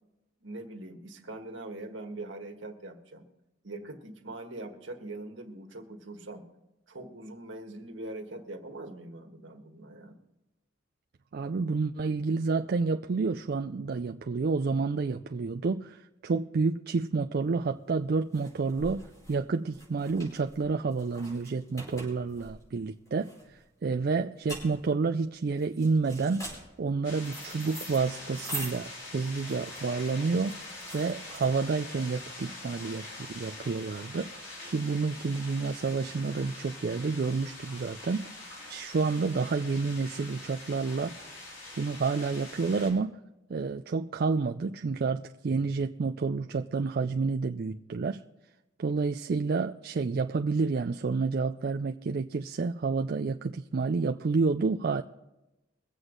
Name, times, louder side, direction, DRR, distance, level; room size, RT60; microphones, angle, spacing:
voice 1, 0.4-3.3 3.6-6.5 6.9-10.2, right 2 dB, 70° right, 4 dB, 1.6 m, -42 dB
voice 2, 11.3-19.0 19.3-26.4 26.8-30.6 30.9-34.3 34.6-41.2 41.8-43.2 43.5-48.2 48.8-55.0, right 4 dB, 50° right, 5 dB, 0.4 m, -29 dB
sound 1, 17.5-31.9, right 1 dB, 15° left, 5.1 m, -45 dB
sound 2, 27.0-42.9, left 2 dB, 75° left, 3.9 m, -44 dB
22.5 x 8.0 x 3.9 m, 1.0 s
head